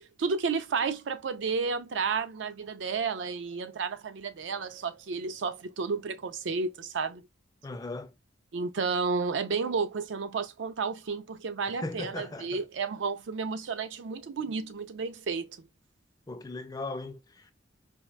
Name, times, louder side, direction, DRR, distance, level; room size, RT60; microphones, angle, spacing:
voice 1, 0.2-7.2 8.5-15.5, right 5 dB, 80° right, 0.4 m, -32 dB
voice 2, 7.6-8.1 11.7-12.6 16.3-17.5, left 2 dB, 20° left, 0.4 m, -38 dB
4.3 x 2.5 x 2.2 m
head